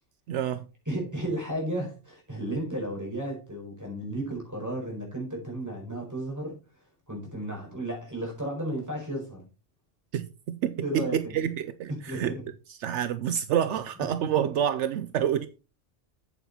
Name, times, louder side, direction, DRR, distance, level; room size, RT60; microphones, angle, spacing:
voice 1, 0.3-0.7 10.1-12.4 12.8-15.5, right 9 dB, 75° right, 0.9 m, -28 dB
voice 2, 0.8-6.6 7.1-9.5 10.8-11.3 11.9-12.4 14.2-14.3, right 1 dB, 15° right, 4.8 m, -33 dB
8.2 x 8.1 x 4.2 m
omnidirectional pair, 1.2 m